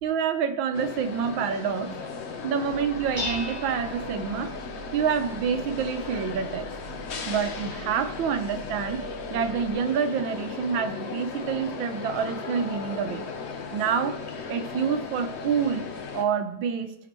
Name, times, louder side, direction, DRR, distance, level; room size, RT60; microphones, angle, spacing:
voice 1, 0.0-2.0 2.4-4.5 4.9-6.7 7.3-9.0 9.3-13.3 13.7-14.2 14.5-17.0, right 7 dB, 80° right, 9 dB, 1.5 m, -27 dB
sound 1, 0.7-16.2, left 5 dB, 55° left, 0.7 m, -36 dB
Dishes pots and pans, 2.6-9.7, right 1 dB, 5° left, 3.5 m, -41 dB
15.5 x 6.0 x 3.0 m, 0.85 s
omnidirectional pair, 2.1 m